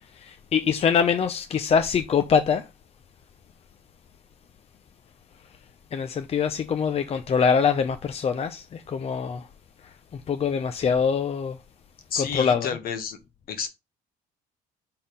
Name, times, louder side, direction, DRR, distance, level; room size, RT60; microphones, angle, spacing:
voice 1, 0.1-2.7 5.9-9.5 9.8-11.6 12.2-12.7, left 6 dB, 35° left, 0.6 m, -24 dB
voice 2, 12.1-13.2 13.5-13.7, left 7 dB, 60° left, 1.4 m, -30 dB
5.6 x 4.2 x 5.1 m
cardioid pair, 110°, 17 cm